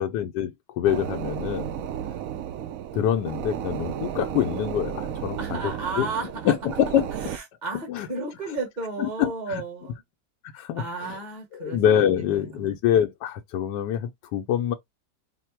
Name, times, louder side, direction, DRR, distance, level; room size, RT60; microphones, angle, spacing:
voice 1, 0.0-1.7 2.9-5.6 6.0-6.1 6.4-7.1 7.9-8.1 9.0-9.6 10.5-11.2 11.5-14.7, left 10 dB, 85° left, 1.2 m, -25 dB
sound 1, 0.8-7.4, right 9 dB, 70° right, 0.8 m, -33 dB
voice 2, 5.4-6.5 7.2-10.0 10.7-11.8 12.2-12.7, right 3 dB, 30° right, 1.3 m, -33 dB
4.8 x 2.1 x 4.4 m
omnidirectional pair, 1.8 m